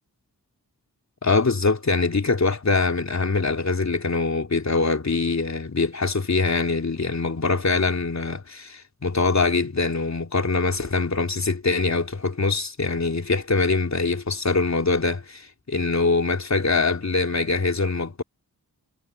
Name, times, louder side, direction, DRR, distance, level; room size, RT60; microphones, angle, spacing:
voice 1, 1.2-18.2, left 3 dB, 45° left, 3.5 m, -23 dB
wide cardioid pair, 100°, 37 cm